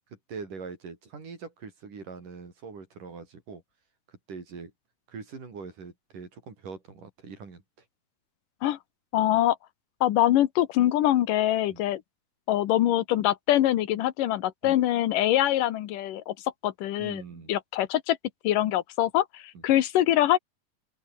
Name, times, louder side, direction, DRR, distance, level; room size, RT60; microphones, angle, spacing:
voice 1, 0.3-3.6 4.1-4.7 5.1-7.6 11.7-11.8 14.6-14.8 17.0-17.5 19.6-19.7, right 5 dB, 75° right, 6.9 m, -42 dB
voice 2, 9.1-9.6 10.0-12.0 12.5-16.3 16.6-17.2 17.5-18.2 18.4-20.4, left 13 dB, 80° left, 2.8 m, -24 dB
open air
omnidirectional pair, 3.7 m